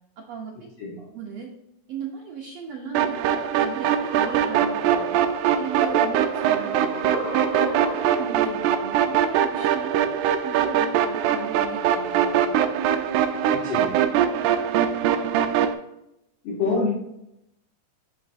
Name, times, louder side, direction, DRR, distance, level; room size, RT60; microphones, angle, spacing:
voice 1, 0.2-0.5 1.1-1.5 1.9-5.2 5.6-7.1 7.5-12.4, right 6 dB, 70° right, -1 dB, 1.7 m, -37 dB
sound 1, 2.9-15.7, right 9 dB, 90° right, 2.1 m, -22 dB
sound 2, 3.3-8.4, left 1 dB, 75° left, 2.2 m, -37 dB
voice 2, 13.5-14.0 16.4-16.9, left 4 dB, 60° left, -7 dB, 2.5 m, -26 dB
10.0 x 4.0 x 2.6 m, 0.82 s
omnidirectional pair, 3.5 m